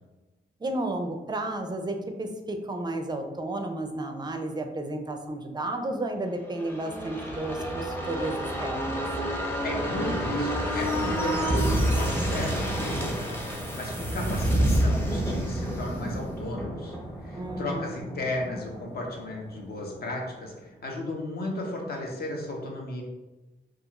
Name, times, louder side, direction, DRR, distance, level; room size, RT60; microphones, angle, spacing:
voice 1, 0.6-9.0 17.4-17.9, right 2 dB, 20° right, 5 dB, 0.4 m, -32 dB
sound 1, 6.5-20.0 20.3-20.4, right 1 dB, 10° left, 0.7 m, -29 dB
voice 2, 9.6-17.0 17.2-23.0, left 2 dB, 55° left, 0 dB, 0.7 m, -34 dB
2.3 x 2.3 x 2.9 m, 1.1 s
cardioid pair, 60°, 20 cm